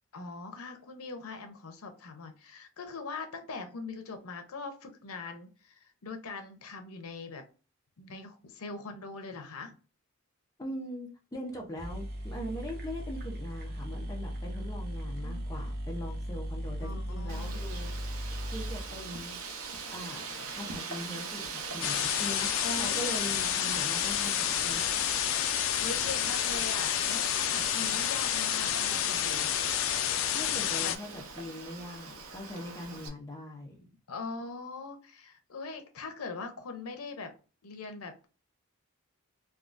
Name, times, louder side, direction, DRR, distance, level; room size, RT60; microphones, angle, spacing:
voice 1, 0.1-7.4 8.0-9.7 15.0-15.4 16.8-17.6 20.4-20.5 22.6-23.2 25.6-29.5 30.8-30.9 34.1-37.3 37.6-38.3, left 3 dB, 90° left, 0.7 m, -42 dB
voice 2, 10.6-17.9 18.5-19.4 19.9-20.2 20.5-24.9 30.3-33.7, equal, 15° left, 0.6 m, -41 dB
sound 1, 11.5-11.6 11.8-19.6, equal, 45° right, 0.6 m, -37 dB
Wind, 17.3-33.1, right 4 dB, 85° right, 0.7 m, -41 dB
sound 2, 21.8-31.0, left 11 dB, 65° left, 0.3 m, -29 dB
3.5 x 2.3 x 2.5 m
head